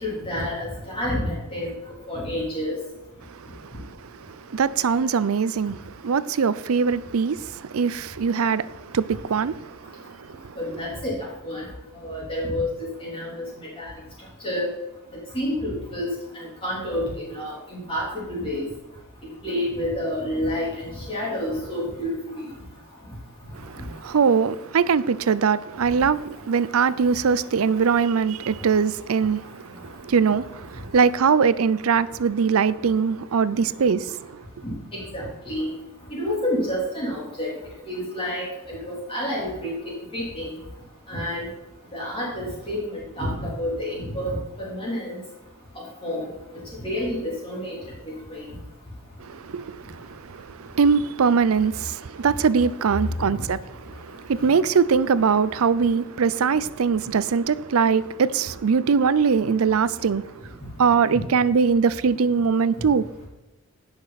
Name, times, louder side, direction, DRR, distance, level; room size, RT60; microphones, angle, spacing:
voice 1, 0.0-1.7 2.1-2.8 10.6-11.2 11.4-11.6 12.0-12.7 13.0-13.4 13.8-13.9 14.4-14.7 15.3-16.1 16.3-18.6 19.4-22.4 34.6-35.7 36.1-37.5 37.9-39.7 40.1-40.5 41.1-41.5 41.9-45.1 46.0-46.2 46.8-47.7 48.3-48.4 53.3-53.4, left 1 dB, 25° left, 3.4 m, -29 dB
voice 2, 4.5-5.8 6.0-7.4 7.7-9.6 24.0-29.4 30.0-34.1 49.4-49.8 50.7-53.6 54.3-60.3 60.8-63.0, right 6 dB, 85° right, 0.5 m, -21 dB
16.5 x 6.1 x 4.1 m
head